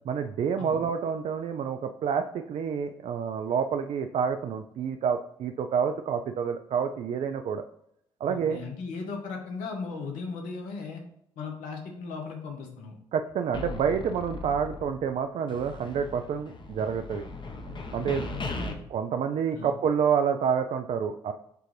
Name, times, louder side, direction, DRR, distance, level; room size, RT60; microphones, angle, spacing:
voice 1, 0.0-7.7 8.2-8.6 13.1-17.2 17.9-18.2 18.9-21.3, right 7 dB, 50° right, 7 dB, 0.4 m, -28 dB
voice 2, 8.3-11.0 11.4-12.9 18.0-18.6 19.5-19.7, left 4 dB, 70° left, 3 dB, 1.0 m, -37 dB
sound 1, 13.5-15.2 15.5-18.7, left 3 dB, 35° left, 0.8 m, -38 dB
6.7 x 2.5 x 3.2 m, 0.73 s
hypercardioid pair, 45°, 14 cm